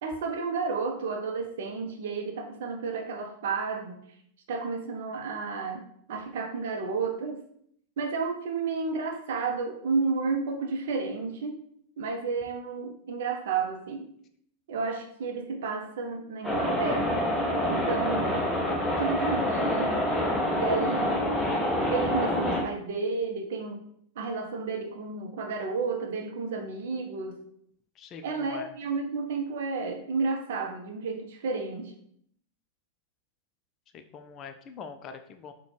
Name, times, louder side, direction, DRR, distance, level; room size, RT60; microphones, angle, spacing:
voice 1, 0.0-4.0 4.5-7.4 8.0-11.5 12.0-14.0 14.7-17.1 17.7-18.5 18.9-20.1 20.5-21.2 21.9-23.8 24.2-27.4 28.2-31.9, right 4 dB, 55° right, 4 dB, 0.5 m, -31 dB
sound 1, 16.4-22.6, equal, 10° left, 0.7 m, -27 dB
voice 2, 28.0-28.7 33.9-35.5, left 6 dB, 30° left, 7 dB, 0.3 m, -44 dB
3.9 x 2.1 x 3.2 m, 0.68 s
figure-of-eight pair, 90°, 0 cm